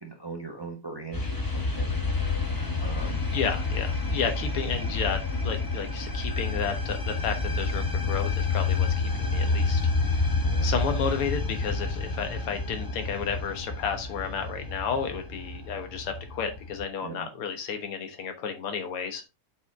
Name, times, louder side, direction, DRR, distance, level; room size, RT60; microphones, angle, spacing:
voice 1, 0.0-2.0 2.8-3.3 10.4-10.7 17.0-17.3, right 4 dB, 15° right, 1 dB, 0.8 m, -40 dB
sound 1, 1.1-16.9, left 3 dB, 25° left, 0.4 m, -29 dB
voice 2, 3.3-19.2, left 6 dB, 80° left, 7 dB, 2.2 m, -32 dB
8.3 x 4.7 x 3.6 m, 0.25 s
omnidirectional pair, 2.4 m